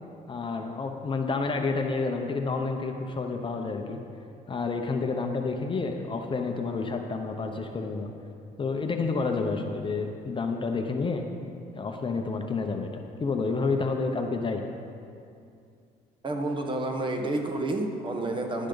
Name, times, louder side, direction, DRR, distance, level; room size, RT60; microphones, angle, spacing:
voice 1, 0.3-4.0 4.5-8.1 8.6-11.2 11.7-12.9 13.2-14.6, left 4 dB, 30° left, 4 dB, 0.8 m, -29 dB
voice 2, 16.2-18.7, right 2 dB, 30° right, 3 dB, 1.2 m, -29 dB
11.5 x 10.0 x 4.0 m, 2.5 s
cardioid pair, 110°, 17 cm